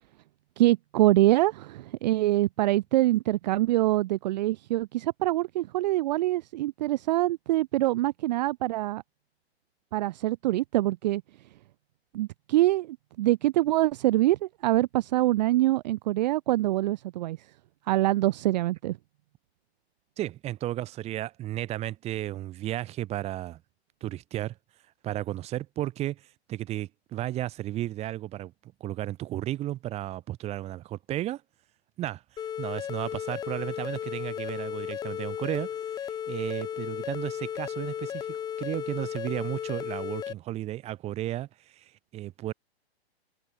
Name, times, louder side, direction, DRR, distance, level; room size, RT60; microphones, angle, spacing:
voice 1, 0.6-9.0 9.9-11.2 12.1-17.4 17.9-19.0, right 16 dB, 40° right, 0.9 m, -25 dB
voice 2, 20.2-23.6 24.0-24.5 25.0-26.2 26.5-31.4 32.0-32.2 32.6-35.7 36.3-41.5 41.8-41.9 42.1-42.5, right 14 dB, 20° right, 1.8 m, -33 dB
sound 1, 32.4-40.3, left 9 dB, 10° left, 1.1 m, -35 dB
hypercardioid pair, 150°, 32 cm